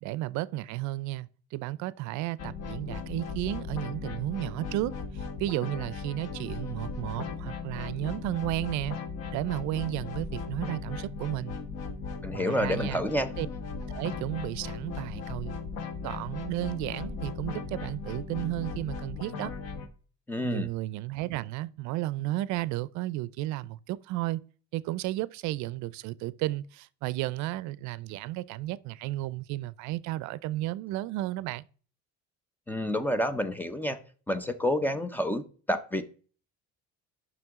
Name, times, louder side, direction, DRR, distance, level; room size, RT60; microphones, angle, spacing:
voice 1, 0.0-9.0 9.3-11.6 12.3-13.0 13.4-13.5 13.9-15.6 16.0-19.5 20.4-24.4 24.7-31.7, right 17 dB, 75° right, 0.5 m, -33 dB
sound 1, 2.4-19.9, left 4 dB, 60° left, 1.3 m, -37 dB
voice 2, 12.2-13.3 20.3-20.7 32.7-34.0 34.3-36.0, left 1 dB, 5° left, 0.5 m, -29 dB
10.5 x 6.1 x 3.6 m
cardioid pair, 165°, 29 cm